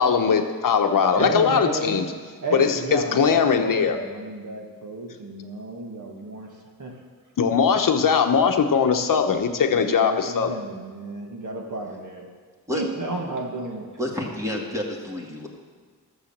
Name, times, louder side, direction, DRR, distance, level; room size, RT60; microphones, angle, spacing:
voice 1, 0.0-2.1 2.5-4.0 7.4-10.5, left 6 dB, 60° left, 5 dB, 0.9 m, -20 dB
voice 2, 1.1-2.1 2.4-6.9 9.7-12.3 12.7-13.9, right 2 dB, 55° right, 1 dB, 1.9 m, -32 dB
voice 3, 14.0-15.5, left 1 dB, 10° right, -2 dB, 2.1 m, -29 dB
13.0 x 7.0 x 7.3 m, 1.5 s
wide cardioid pair, 120°, 37 cm